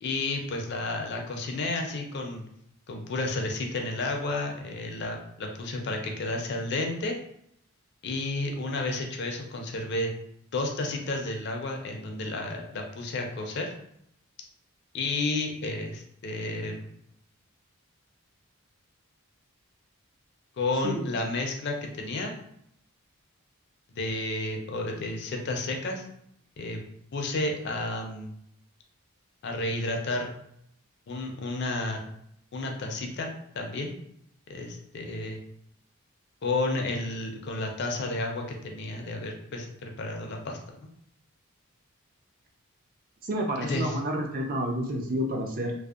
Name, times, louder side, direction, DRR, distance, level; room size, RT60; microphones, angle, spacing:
voice 1, 0.0-2.4 2.9-7.2 8.0-10.1 10.5-13.7 14.9-16.9 20.6-22.3 24.0-26.0 26.6-26.8 27.1-28.3 29.4-30.3 31.1-32.0 32.5-33.3 33.5-34.1 34.5-35.4 36.4-40.6 43.6-44.0, left 2 dB, 50° left, 2 dB, 0.4 m, -31 dB
voice 2, 43.2-45.7, right 1 dB, 40° right, 1 dB, 0.4 m, -29 dB
2.6 x 2.0 x 2.3 m, 0.73 s
head